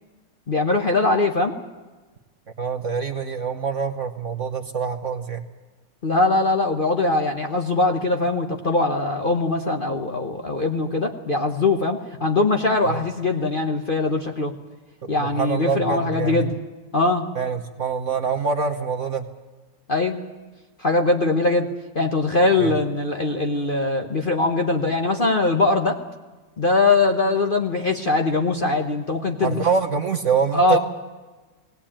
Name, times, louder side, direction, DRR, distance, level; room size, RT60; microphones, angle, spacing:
voice 1, 0.5-1.6 6.0-14.5 15.1-16.6 16.9-17.3 19.9-20.2 20.8-21.7 21.9-26.0 26.6-29.7 30.5-30.8, left 2 dB, 35° left, 4 dB, 1.0 m, -21 dB
voice 2, 2.6-5.4 12.9-13.0 15.0-16.5 17.3-19.2 22.6-22.7 29.4-30.8, right 5 dB, 50° right, 6 dB, 1.2 m, -25 dB
19.5 x 18.0 x 8.8 m, 1.3 s
omnidirectional pair, 2.0 m